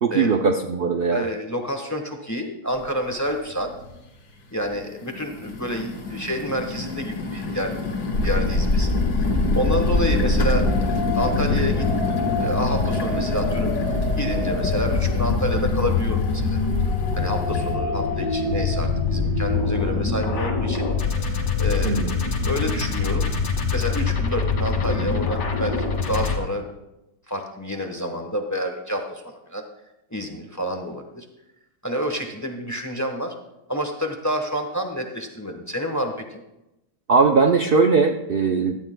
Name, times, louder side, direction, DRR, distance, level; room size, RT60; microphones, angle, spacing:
voice 1, 0.0-1.3 21.8-22.2 37.1-38.8, right 4 dB, 65° right, 5 dB, 0.5 m, -19 dB
voice 2, 1.1-3.7 4.5-7.7 8.2-8.9 9.2-10.7 11.1-11.9 12.1-13.7 14.2-16.6 17.1-20.9 21.3-23.3 23.6-26.7 27.3-29.6 30.1-31.2 31.8-33.3 33.7-36.4, equal, 10° left, 4 dB, 0.9 m, -29 dB
sound 1, 2.7-2.8 3.3-3.9 4.6-17.7, left 3 dB, 65° left, 1.8 m, -29 dB
sound 2, 8.1-26.4, left 3 dB, 85° left, 2.2 m, -24 dB
16.5 x 13.0 x 2.2 m, 0.93 s
omnidirectional pair, 1.8 m